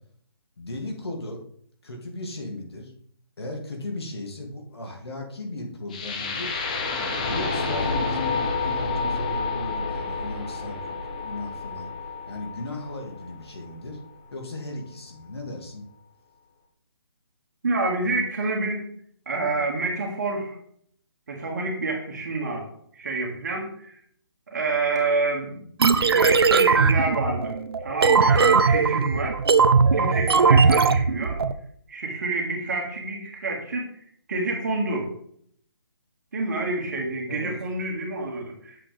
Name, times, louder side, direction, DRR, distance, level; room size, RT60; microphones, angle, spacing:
voice 1, 0.6-1.4 1.8-2.9 3.4-6.5 7.2-11.9 12.3-14.0 14.3-15.8 37.3-37.6, left 2 dB, 70° left, 1 dB, 2.5 m, -36 dB
sound 1, 5.9-13.9, left 4 dB, 20° left, 0.7 m, -29 dB
voice 2, 17.6-18.8 19.3-20.6 21.3-22.7 22.9-24.0 24.5-25.7 25.9-27.6 27.8-29.4 29.9-31.4 31.9-33.9 34.3-35.1 36.3-38.8, right 3 dB, 40° right, 0 dB, 2.1 m, -28 dB
sound 2, 25.8-31.5, right 5 dB, 65° right, 0.7 m, -19 dB
9.1 x 7.6 x 3.4 m, 0.63 s
hypercardioid pair, 175°, 14 cm